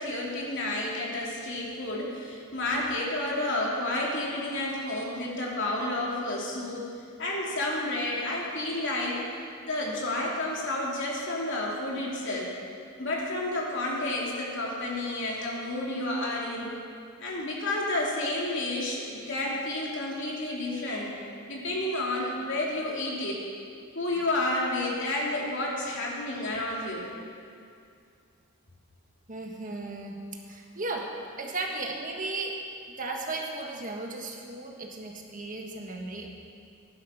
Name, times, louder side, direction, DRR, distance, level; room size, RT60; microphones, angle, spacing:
voice 1, 0.0-6.9 7.2-9.3 9.6-12.5 13.0-16.7 17.2-21.1 21.5-23.4 23.9-27.1, left 1 dB, 60° left, -3 dB, 3.0 m, -30 dB
voice 2, 29.3-30.2 30.5-31.1 31.4-32.6 33.0-36.3, right 2 dB, 40° right, 1 dB, 1.6 m, -35 dB
15.5 x 11.5 x 5.8 m, 2.4 s
head